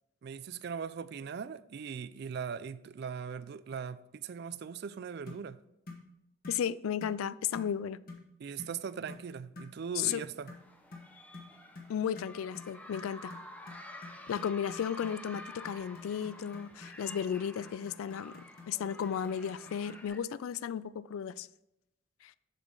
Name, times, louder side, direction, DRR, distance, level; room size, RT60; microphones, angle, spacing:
voice 1, 0.2-5.6 8.4-10.5, right 6 dB, 55° right, 0.3 m, -40 dB
sound 1, 5.3-5.5 5.9-6.1 6.4-6.7 7.0-7.2 7.5-7.8 8.1-8.3 8.6-8.8 9.1-9.3 9.6-9.7 10.0-10.2 10.5-20.1, left 3 dB, 45° left, 1.2 m, -49 dB
voice 2, 6.5-8.0 10.0-10.2 11.9-13.3 14.3-21.5 22.2-22.3, left 8 dB, 90° left, 0.3 m, -34 dB
sound 2, 10.4-20.2, left 1 dB, 10° left, 0.6 m, -50 dB
7.1 x 6.8 x 3.8 m
head